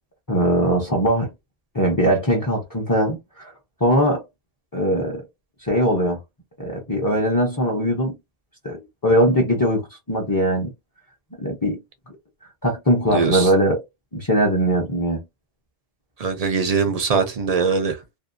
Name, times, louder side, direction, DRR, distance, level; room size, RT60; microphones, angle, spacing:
voice 1, 0.3-1.3 1.7-3.5 3.8-4.2 4.7-5.2 5.6-6.2 6.6-8.2 8.6-10.7 11.4-11.8 12.6-13.8 14.1-15.2, equal, 25° left, 0.4 m, -20 dB
voice 2, 13.1-13.5 16.2-18.0, right 5 dB, 55° right, 0.4 m, -21 dB
2.7 x 2.2 x 2.5 m
omnidirectional pair, 1.2 m